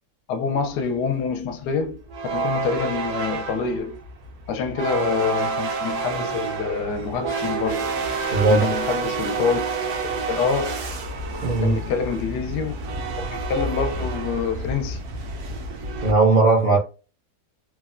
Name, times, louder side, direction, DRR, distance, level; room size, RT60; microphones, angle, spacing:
voice 1, 0.3-2.0 2.3-4.0 4.5-7.9 8.5-9.6 10.0-10.8 11.6-12.7 13.2-15.0, left 5 dB, 80° left, 1.1 m, -26 dB
sound 1, 1.4-1.5 1.8-16.1, right 4 dB, 70° right, 1.1 m, -29 dB
voice 2, 8.3-8.7 11.4-11.8 16.0-16.8, right 3 dB, 55° right, 0.6 m, -17 dB
3.2 x 2.1 x 2.4 m
omnidirectional pair, 1.8 m